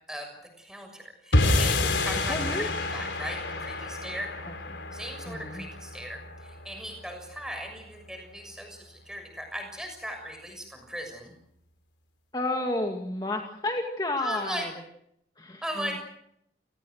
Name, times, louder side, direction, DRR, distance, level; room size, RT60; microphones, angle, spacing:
voice 1, 0.6-4.3 4.9-11.3 14.2-14.7 15.6-16.0, equal, 5° right, 4 dB, 6.6 m, -38 dB
sound 1, 1.3-7.7, left 2 dB, 90° left, 4.1 m, -29 dB
voice 2, 2.3-2.7 4.5-4.6 5.3-5.7 12.3-14.7 15.4-16.0, left 2 dB, 25° left, 2 dB, 2.1 m, -31 dB
29.5 x 19.5 x 6.5 m, 0.75 s
head